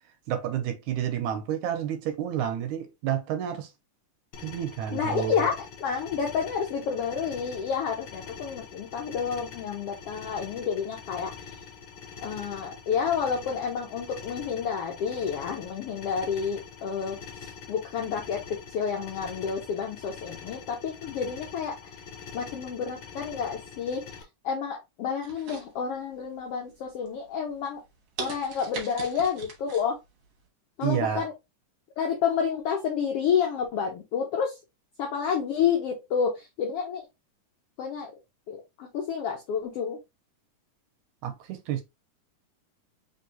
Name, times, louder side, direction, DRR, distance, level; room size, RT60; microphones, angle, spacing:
voice 1, 0.3-3.7 4.4-5.3 30.8-31.2 41.2-41.8, right 10 dB, 80° right, 2.0 m, -30 dB
sound 1, 4.3-24.2, left 6 dB, 60° left, 1.5 m, -44 dB
voice 2, 4.9-5.5 5.8-11.3 12.2-17.2 17.7-21.9 22.3-24.1 24.4-27.8 28.2-30.0 30.8-31.3 32.0-34.6 35.0-37.0 37.8-38.1 38.5-40.0, left 7 dB, 80° left, 1.3 m, -29 dB
sound 2, 25.2-26.2 26.7-27.1 27.6-27.7 28.2-29.9 30.2-30.3, right 5 dB, 55° right, 1.4 m, -40 dB
4.6 x 3.3 x 2.7 m
omnidirectional pair, 3.7 m